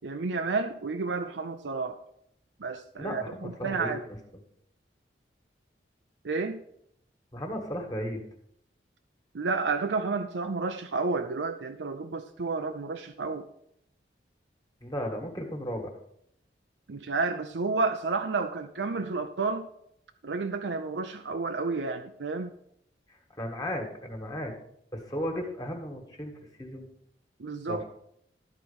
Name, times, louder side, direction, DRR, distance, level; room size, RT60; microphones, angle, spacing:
voice 1, 0.0-2.0 2.6-4.0 6.2-6.6 9.3-13.5 16.9-19.7 20.2-22.6 27.4-27.8, right 4 dB, 85° right, 6 dB, 0.6 m, -31 dB
voice 2, 3.0-3.9 7.3-8.2 14.8-15.9 23.1-24.5 24.9-26.9 27.7-27.9, equal, 20° left, 2 dB, 1.6 m, -35 dB
12.0 x 4.6 x 7.1 m, 0.73 s
head